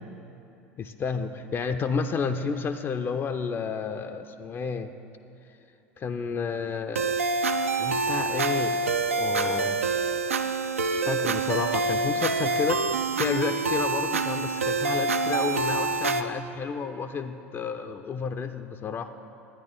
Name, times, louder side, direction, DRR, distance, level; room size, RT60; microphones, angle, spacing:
voice 1, 0.8-4.9 6.0-7.2 7.8-8.8 9.1-9.8 10.9-19.1, left 5 dB, 30° left, 8 dB, 0.4 m, -31 dB
sound 1, 7.0-16.2, right 3 dB, 90° right, 0.3 m, -26 dB
11.0 x 9.3 x 3.8 m, 2.8 s
figure-of-eight pair, 70°, 7 cm